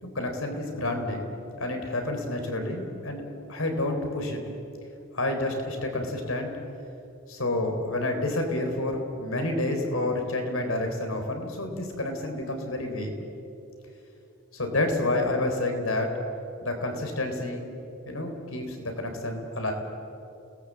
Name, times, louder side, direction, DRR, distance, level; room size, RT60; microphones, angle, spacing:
voice 1, 0.0-1.2 1.6-3.2 3.5-4.4 5.1-6.5 7.3-13.1 14.5-16.1 16.6-17.6 18.1-19.7, left 2 dB, 80° left, 4 dB, 3.9 m, -29 dB
29.5 x 19.0 x 7.7 m, 2.8 s
head